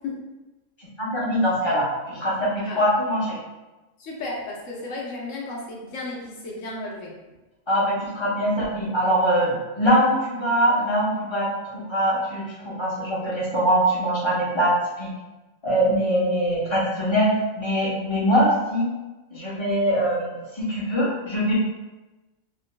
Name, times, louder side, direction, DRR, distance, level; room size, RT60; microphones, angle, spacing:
voice 1, 1.0-3.4 7.7-15.1 15.6-18.9 19.3-21.5, equal, 25° left, -6 dB, 0.7 m, -23 dB
voice 2, 4.0-7.1, left 2 dB, 65° left, -3 dB, 1.2 m, -33 dB
3.8 x 3.4 x 2.2 m, 1.1 s
omnidirectional pair, 1.5 m